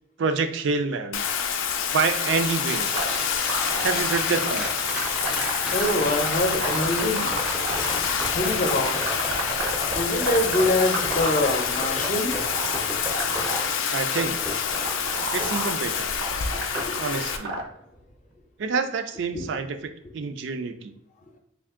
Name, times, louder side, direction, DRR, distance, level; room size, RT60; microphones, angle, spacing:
voice 1, 0.2-1.2 1.9-2.9 3.8-4.7 13.9-14.4 15.3-16.1 17.0-17.6 18.6-20.9, right 4 dB, 65° right, 8 dB, 0.4 m, -27 dB
Bathtub (filling or washing), 1.1-17.4, left 7 dB, 90° left, 0.4 m, -27 dB
sound 1, 2.2-16.3 16.7-17.8 20.0-20.1, equal, 5° right, 0.5 m, -35 dB
sound 2, 2.9-17.6, right 2 dB, 85° right, 0.8 m, -33 dB
voice 2, 5.7-7.3 8.3-9.1 9.9-12.3 16.9-17.0 19.3-19.4, left 1 dB, 40° left, 3 dB, 0.6 m, -24 dB
3.5 x 2.5 x 3.6 m, 0.75 s
head